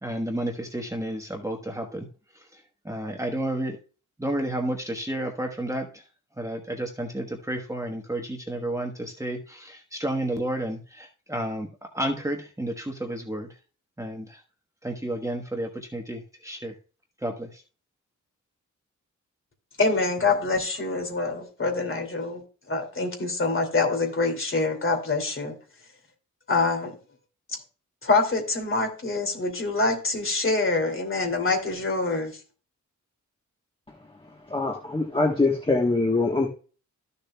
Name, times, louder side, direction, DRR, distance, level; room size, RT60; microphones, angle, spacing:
voice 1, 0.0-2.1 2.3-3.8 4.2-6.0 6.3-13.5 14.0-14.4 14.8-16.7 17.2-17.6, right 1 dB, 10° right, 2 dB, 1.1 m, -31 dB
voice 2, 19.8-25.6 26.5-26.9 28.0-32.4, left 3 dB, 40° left, 3 dB, 2.6 m, -25 dB
voice 3, 34.5-36.5, left 3 dB, 15° left, 0 dB, 1.2 m, -23 dB
14.0 x 6.8 x 2.3 m, 0.36 s
wide cardioid pair, 145°, 31 cm